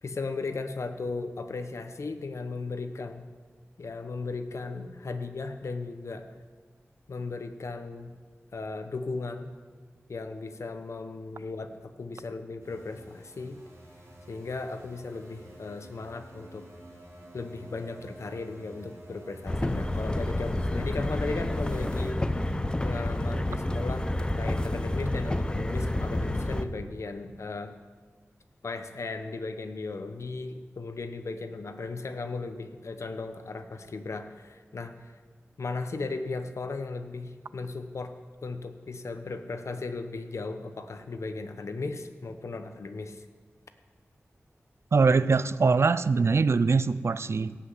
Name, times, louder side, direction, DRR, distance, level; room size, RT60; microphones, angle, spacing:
voice 1, 0.0-3.3 3.8-6.3 7.1-8.1 8.5-9.5 10.1-13.6 14.3-16.7 17.3-22.2 22.8-27.8 28.6-35.1 35.6-43.3, left 3 dB, 75° left, 8 dB, 1.0 m, -36 dB
sound 1, 12.6-22.1, right 1 dB, 85° right, 4.1 m, -50 dB
sound 2, 19.5-26.6, left 1 dB, 20° left, 0.7 m, -29 dB
voice 2, 44.9-47.6, right 4 dB, 60° right, 16 dB, 0.4 m, -23 dB
16.5 x 5.7 x 8.2 m, 1.5 s
wide cardioid pair, 65°, 5 cm